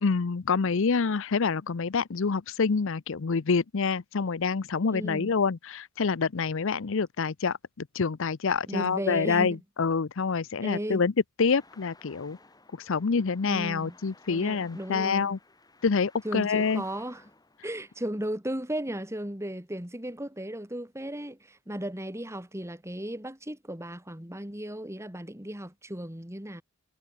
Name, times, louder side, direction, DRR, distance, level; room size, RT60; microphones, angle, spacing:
voice 1, 0.0-11.1 11.4-12.4 12.7-15.4 15.8-16.8, left 5 dB, 65° left, 0.6 m, -27 dB
voice 2, 4.9-5.3 8.7-9.6 10.6-11.0 13.5-13.9 14.3-15.3 16.2-17.2 17.6-26.6, right 1 dB, 15° right, 3.9 m, -35 dB
Traffic noise roadway noise, 11.5-18.1, left 3 dB, 20° left, 6.7 m, -57 dB
head